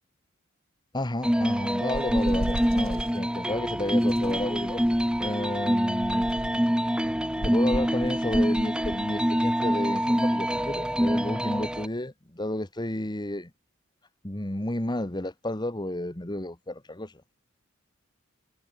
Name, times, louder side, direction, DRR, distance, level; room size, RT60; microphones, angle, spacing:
voice 1, 0.9-6.4 7.4-13.5 14.2-17.1, left 1 dB, 20° left, 1.5 m, -32 dB
sound 1, 1.2-11.9, equal, 5° right, 2.8 m, -25 dB
sound 2, 1.9-3.2 4.1-5.4 6.0-6.7 7.4-9.0, equal, 85° right, 6.1 m, -35 dB
head